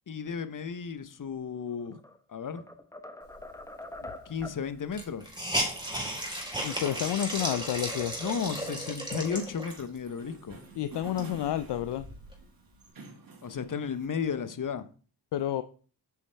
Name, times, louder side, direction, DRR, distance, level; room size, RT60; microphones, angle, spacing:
voice 1, 0.1-2.0 2.3-2.6 4.0-5.3 8.2-10.6 13.4-14.9, left 6 dB, 45° left, 0.9 m, -34 dB
sound 1, 1.7-2.2 2.5-4.7, left 2 dB, 5° left, 1.0 m, -44 dB
Hiss, 4.1-4.2 4.4-4.5 4.9-10.0 10.5-10.6 11.0-12.4, right 1 dB, 10° right, 4.3 m, -34 dB
voice 2, 6.6-8.1 10.8-12.1 15.3-15.6, left 11 dB, 65° left, 0.6 m, -30 dB
sound 2, 7.7-14.1, right 3 dB, 50° right, 1.9 m, -51 dB
8.4 x 5.4 x 3.4 m
supercardioid pair, 40°, 45 cm